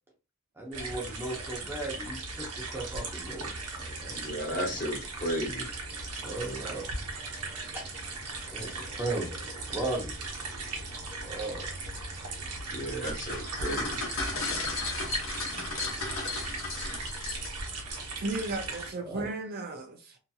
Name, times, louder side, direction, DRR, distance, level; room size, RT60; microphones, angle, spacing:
voice 1, 0.6-4.8 6.2-6.9 7.7-7.8 8.5-10.2 11.2-11.7 19.0-19.3, right 2 dB, 10° right, 0.6 m, -37 dB
sound 1, 0.7-18.9, right 3 dB, 90° right, 0.8 m, -38 dB
voice 2, 4.1-5.7 12.7-14.0, equal, 35° left, 1.1 m, -34 dB
sound 2, 13.1-17.7, left 3 dB, 65° left, 1.0 m, -34 dB
voice 3, 18.2-20.2, right 2 dB, 45° right, 0.4 m, -35 dB
2.7 x 2.5 x 2.3 m
head